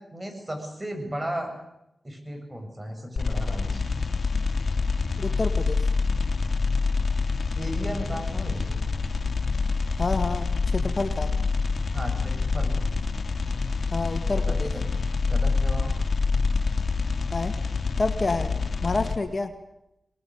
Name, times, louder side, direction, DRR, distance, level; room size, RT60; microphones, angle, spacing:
voice 1, 0.1-1.5 2.0-3.8 7.5-8.8 11.9-12.9 14.5-14.6 15.2-15.9, equal, 25° right, 4 dB, 7.7 m, -34 dB
sound 1, 3.2-19.2, left 4 dB, 65° left, 2.8 m, -26 dB
voice 2, 5.2-5.9 10.0-11.3 13.9-14.7 17.3-17.5 18.0-18.5 18.8-19.5, left 3 dB, 45° left, 7 dB, 2.1 m, -28 dB
22.0 x 20.5 x 9.6 m, 0.87 s
cardioid pair, 60°, 0 cm